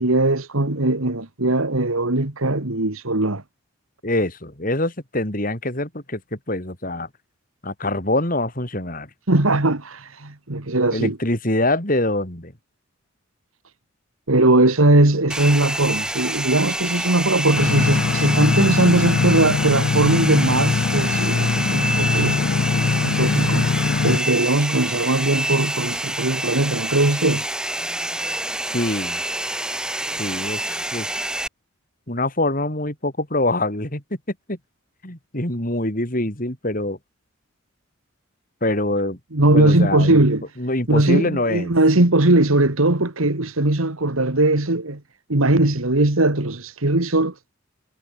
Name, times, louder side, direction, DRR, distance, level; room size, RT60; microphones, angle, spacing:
voice 1, 0.0-3.4 9.3-11.2 14.3-22.4 23.0-23.7 24.0-27.4 39.3-40.4 40.9-45.0 45.3-47.3, right 2 dB, 90° right, 2.3 m, -19 dB
voice 2, 4.0-7.1 7.6-9.1 10.9-12.5 28.7-29.2 30.2-31.1 32.1-34.0 34.5-34.6 35.0-37.0 38.6-39.2 39.5-40.3 40.6-41.7, left 1 dB, 40° left, 4.8 m, -24 dB
Domestic sounds home sounds, 15.3-31.5, right 1 dB, 5° right, 0.5 m, -27 dB
sound 1, 17.5-24.2, left 4 dB, 65° left, 0.5 m, -22 dB
head